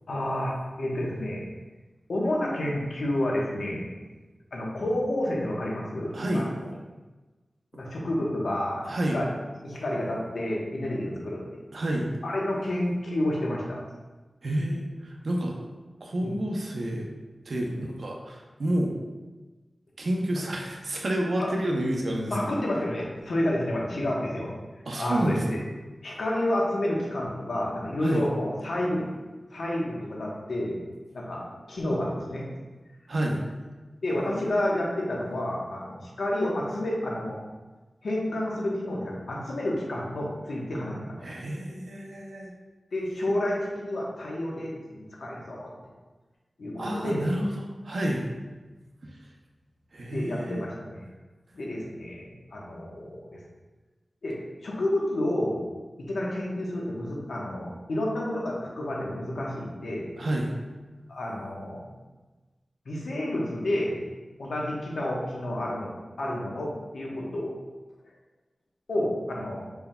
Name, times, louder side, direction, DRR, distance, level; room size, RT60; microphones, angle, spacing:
voice 1, 0.1-1.4 2.1-3.8 4.5-6.4 7.7-9.3 9.6-11.4 12.2-13.8 16.2-16.3 17.7-17.8 22.3-24.5 24.9-25.6 26.0-29.1 29.5-30.8 31.1-32.4 34.0-37.4 38.0-41.3 42.9-45.7 46.6-47.3 50.1-51.0 51.5-53.4 54.2-55.6 56.0-60.2 61.1-61.9 62.9-64.0 64.4-65.9 66.2-67.5 68.9-69.6, left 1 dB, 85° left, -3 dB, 1.0 m, -30 dB
voice 2, 6.1-6.5 8.8-9.2 11.7-12.1 14.4-15.6 16.0-17.1 17.4-18.9 20.0-22.5 24.9-25.6 28.0-28.3 33.1-33.4 41.2-42.5 46.8-48.3 49.0-49.2 49.9-50.7 60.2-60.5, right 1 dB, 70° right, 0 dB, 0.7 m, -29 dB
5.2 x 4.6 x 2.2 m, 1.2 s
wide cardioid pair, 85°, 0 cm